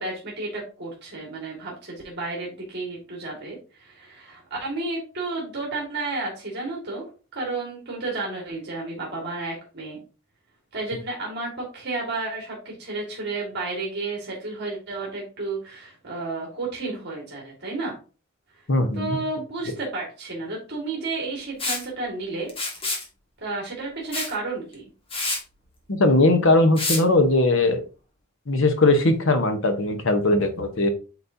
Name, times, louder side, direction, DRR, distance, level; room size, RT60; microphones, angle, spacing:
voice 1, 0.0-7.1 7.3-10.0 10.7-18.0 18.9-22.5 23.4-24.8, right 3 dB, 50° right, -2 dB, 2.0 m, -32 dB
voice 2, 18.7-19.1 25.9-27.8 28.5-30.9, left 2 dB, 65° left, 7 dB, 1.1 m, -19 dB
Liquid, 21.6-21.8 22.5-23.1 24.1-24.3 24.7-24.8 25.1-25.4 26.8-27.0, left 2 dB, 25° left, 1.6 m, -27 dB
8.1 x 4.2 x 2.8 m, 0.35 s
head